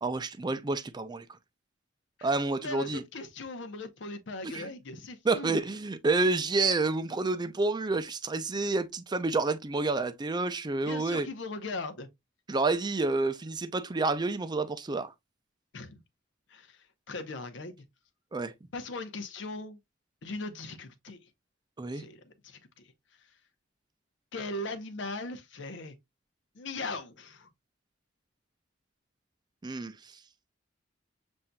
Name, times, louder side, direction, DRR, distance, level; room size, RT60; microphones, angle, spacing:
voice 1, 0.0-1.3 2.2-3.0 4.4-4.7 5.2-11.3 12.5-15.1 18.3-18.5 21.8-22.0 29.6-30.2, right 3 dB, 20° right, 0.4 m, -29 dB
voice 2, 2.6-5.6 10.8-12.1 15.7-16.0 16.5-16.8 17.1-17.8 18.7-19.8 20.2-21.2 21.9-22.6 24.3-25.9 26.6-27.5, left 2 dB, 65° left, 0.7 m, -39 dB
7.2 x 2.6 x 2.2 m
head